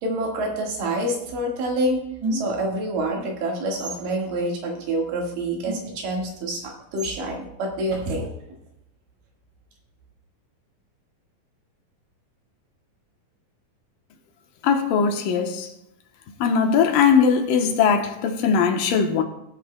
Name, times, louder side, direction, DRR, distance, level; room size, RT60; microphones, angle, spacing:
voice 1, 0.0-8.3, right 1 dB, 80° right, 3.4 m, -27 dB
sound 1, 2.2-2.7 3.8-4.0 5.7-6.1 7.0-7.1 7.9-8.0, right 1 dB, 35° right, 4.1 m, -30 dB
voice 2, 14.6-15.7 16.4-19.2, left 6 dB, 80° left, 2.7 m, -20 dB
19.0 x 8.7 x 2.2 m
omnidirectional pair, 3.9 m